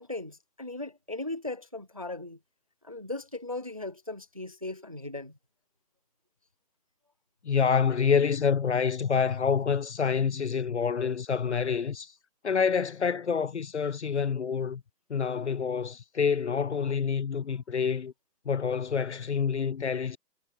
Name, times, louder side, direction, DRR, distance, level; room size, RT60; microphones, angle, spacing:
voice 1, 0.0-2.4 2.8-5.4, left 2 dB, 20° right, 0.6 m, -38 dB
voice 2, 7.4-12.1 12.4-14.8 15.1-18.1 18.5-20.2, left 6 dB, 45° left, 0.7 m, -27 dB
hypercardioid pair, 175°, 50 cm